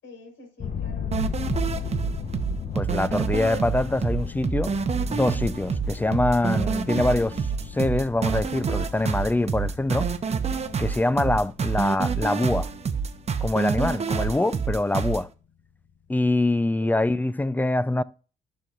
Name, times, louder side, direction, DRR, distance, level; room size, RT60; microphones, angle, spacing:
voice 1, 0.0-2.2 16.8-16.9, left 3 dB, 75° left, 4.2 m, -49 dB
sound 1, 0.6-14.2, left 7 dB, 40° left, 0.8 m, -36 dB
sound 2, 1.1-15.2, right 6 dB, 35° right, 0.8 m, -27 dB
voice 2, 2.7-4.7 5.1-7.4 7.7-10.1 10.8-12.7 13.4-15.3 16.1-18.0, left 2 dB, 10° left, 0.3 m, -24 dB
14.0 x 6.0 x 2.5 m
cardioid pair, 90°, 20 cm